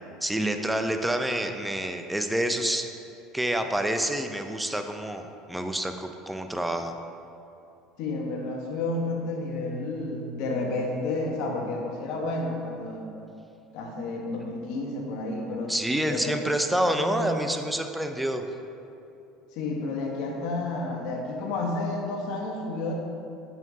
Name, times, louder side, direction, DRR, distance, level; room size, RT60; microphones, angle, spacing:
voice 1, 0.2-2.9 3.3-6.9 15.7-18.4, right 1 dB, 5° right, 6 dB, 0.6 m, -28 dB
voice 2, 8.0-13.2 13.7-15.8 16.1-16.5 16.8-17.3 19.5-22.9, left 2 dB, 65° left, 0 dB, 1.2 m, -31 dB
8.9 x 5.7 x 2.8 m, 2.7 s
hypercardioid pair, 75°, 0 cm